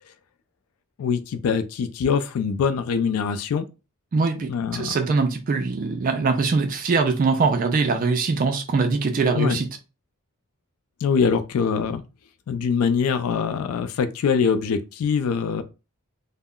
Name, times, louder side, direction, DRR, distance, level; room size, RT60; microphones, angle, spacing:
voice 1, 1.0-3.7 4.5-5.0 9.3-9.6 11.0-12.0 12.5-15.6, left 6 dB, 80° left, 0.3 m, -23 dB
voice 2, 4.1-9.7, right 4 dB, 40° right, 0.3 m, -22 dB
2.2 x 2.0 x 3.6 m
head